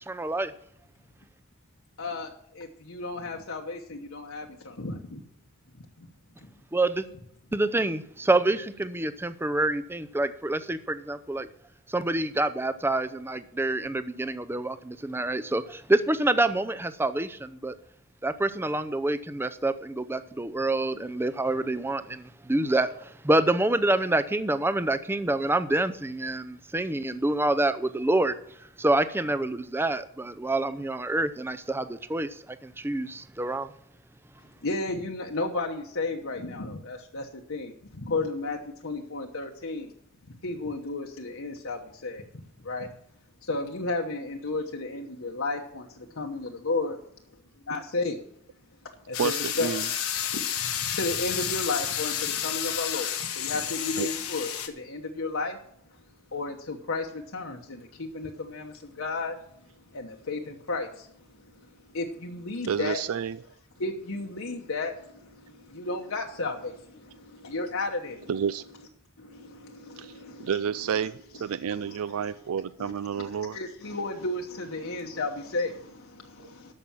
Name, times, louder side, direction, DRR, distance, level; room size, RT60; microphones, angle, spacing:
voice 1, 0.1-0.5 6.7-7.1 7.5-11.5 11.9-17.7 18.2-28.3 28.8-33.7, right 2 dB, 10° right, 12 dB, 0.5 m, -27 dB
voice 2, 2.0-5.2 6.0-6.1 34.6-39.9 40.3-42.2 42.6-42.9 43.4-47.0 47.7-48.2 49.1-49.9 50.3-55.6 56.3-59.4 59.9-63.0 63.8-68.3 69.2-70.6 71.0-71.1 71.3-71.4 71.7-72.0 72.8-73.2 73.5-76.7, left 3 dB, 70° left, 1 dB, 1.1 m, -33 dB
sound 1, 49.1-54.7, left 10 dB, 90° left, 1.4 m, -31 dB
voice 3, 49.2-49.9 54.0-54.1 62.7-63.4 68.3-68.6 70.0-70.1 70.4-73.6 76.4-76.5, right 7 dB, 80° right, 15 dB, 0.4 m, -30 dB
13.0 x 5.9 x 7.2 m, 0.72 s
head